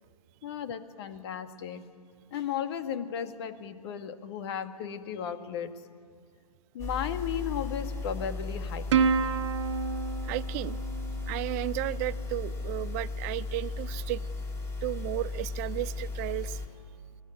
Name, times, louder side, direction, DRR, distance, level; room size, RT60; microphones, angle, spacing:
voice 1, 0.4-1.9 2.3-5.8 6.7-9.2, left 8 dB, 40° left, 9 dB, 1.8 m, -35 dB
sound 1, 6.8-16.7, left 3 dB, 15° left, 3.3 m, -36 dB
Plucked string instrument, 8.9-11.7, right 6 dB, 45° right, 1.1 m, -29 dB
voice 2, 10.2-10.8 11.3-14.2 14.8-16.6, right 17 dB, 25° right, 17 dB, 0.5 m, -34 dB
23.5 x 18.0 x 9.8 m, 2.2 s
figure-of-eight pair, 130°, 20 cm